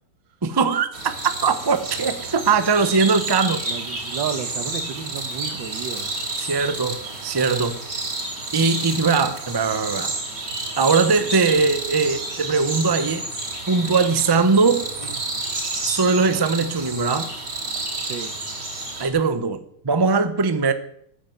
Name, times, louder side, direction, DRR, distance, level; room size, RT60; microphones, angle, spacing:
voice 1, 0.4-1.1 1.4-3.6 6.4-7.8 8.5-10.1 10.8-13.3 13.7-14.9 15.8-17.3 19.0-20.7, right 4 dB, 20° right, 0.6 m, -20 dB
sound 1, 0.9-19.1, right 2 dB, 65° right, 3.9 m, -30 dB
voice 2, 3.6-6.2 18.0-18.3, right 8 dB, 85° right, 1.9 m, -32 dB
13.5 x 9.9 x 7.8 m
omnidirectional pair, 2.0 m